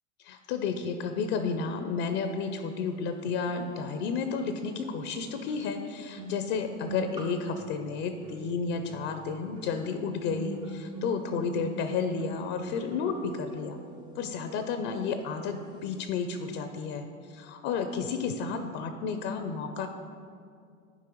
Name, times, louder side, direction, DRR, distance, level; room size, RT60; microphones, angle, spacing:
voice 1, 0.2-13.8 14.2-19.9, left 5 dB, 45° left, 7 dB, 0.5 m, -32 dB
sound 1, 3.4-3.5 4.8-15.9 16.1-16.4, right 2 dB, 15° right, 0.3 m, -43 dB
10.5 x 4.5 x 3.0 m, 2.3 s
hypercardioid pair, 95°, 40 cm